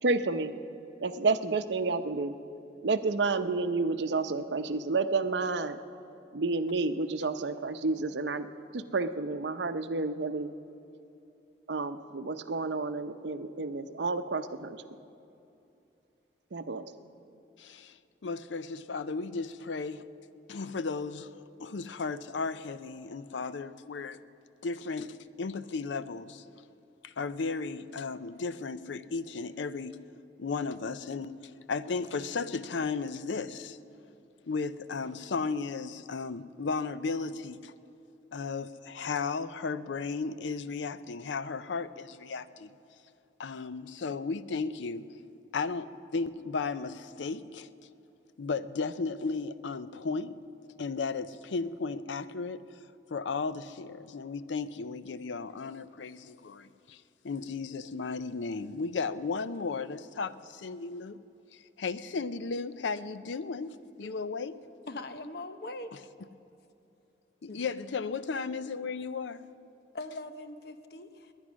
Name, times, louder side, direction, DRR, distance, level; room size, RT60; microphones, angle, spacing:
voice 1, 0.0-0.6 1.0-2.3 2.8-5.8 6.3-10.5 11.7-14.8 16.5-16.9, right 3 dB, 75° right, 11 dB, 0.7 m, -30 dB
voice 2, 17.6-18.0 18.2-20.1 20.5-21.3 21.6-24.2 24.6-26.4 27.0-30.0 30.4-31.4 31.7-33.8 34.5-37.7 38.3-42.7 43.4-45.1 45.5-47.7 48.4-50.4 50.8-52.6 53.1-61.2 61.5-64.6 65.9-66.0 67.4-69.4, left 4 dB, 85° left, 15 dB, 0.5 m, -35 dB
voice 3, 64.9-65.9 67.5-67.6 69.9-71.3, left 2 dB, 55° left, 9 dB, 0.8 m, -41 dB
21.0 x 9.7 x 6.3 m, 2.7 s
head